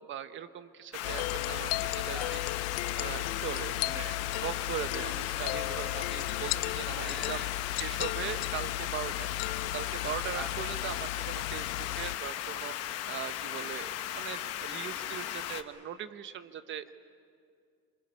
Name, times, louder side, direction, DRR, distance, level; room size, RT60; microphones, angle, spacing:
voice 1, 0.0-2.4 2.9-9.3 9.7-16.9, right 9 dB, 35° right, 11 dB, 0.9 m, -40 dB
sound 1, 0.9-15.6, left 12 dB, 45° left, 1.0 m, -37 dB
sound 2, 1.0-12.2, left 19 dB, 90° left, 0.5 m, -35 dB
voice 2, 2.1-3.0 6.9-7.6 10.3-10.5 14.7-14.9, equal, ahead, 0 dB, 2.3 m, -46 dB
29.5 x 25.0 x 5.4 m, 2.3 s
cardioid pair, 160°, 34 cm